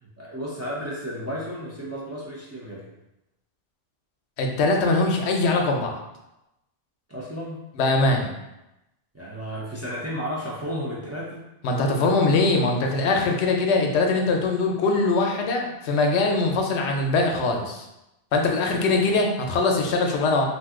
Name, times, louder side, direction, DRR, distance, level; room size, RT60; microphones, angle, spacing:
voice 1, 0.0-2.9 7.1-7.6 9.1-11.4, equal, 25° right, -6 dB, 0.3 m, -33 dB
voice 2, 4.4-6.0 7.8-8.3 11.6-17.9 18.3-20.4, left 3 dB, 85° left, 2 dB, 0.8 m, -22 dB
2.6 x 2.2 x 3.5 m, 0.92 s
omnidirectional pair, 1.1 m